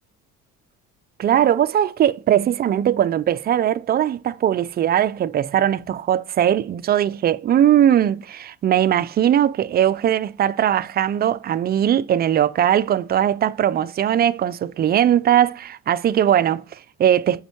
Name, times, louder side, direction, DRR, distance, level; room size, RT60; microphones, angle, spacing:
voice 1, 1.2-17.4, right 10 dB, 35° right, 0.4 m, -19 dB
8.0 x 5.2 x 2.9 m
cardioid pair, 100°, 29 cm